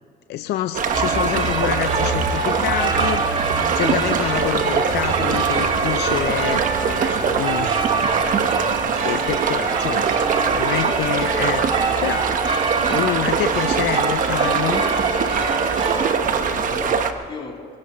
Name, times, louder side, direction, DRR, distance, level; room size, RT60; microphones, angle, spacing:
voice 1, 0.3-6.6 7.3-7.9 9.0-10.1 10.5-11.7 12.0-12.3 12.9-14.8, left 13 dB, 75° left, 10 dB, 0.6 m, -27 dB
sound 1, 0.7-17.1, right 6 dB, 50° right, 1.2 m, -23 dB
sound 2, 0.9-16.1, right 3 dB, 35° right, 2.0 m, -25 dB
voice 2, 6.8-7.6 16.0-17.8, left 4 dB, 30° left, -2 dB, 3.8 m, -37 dB
26.0 x 17.0 x 3.1 m, 2.2 s
cardioid pair, 110°, 17 cm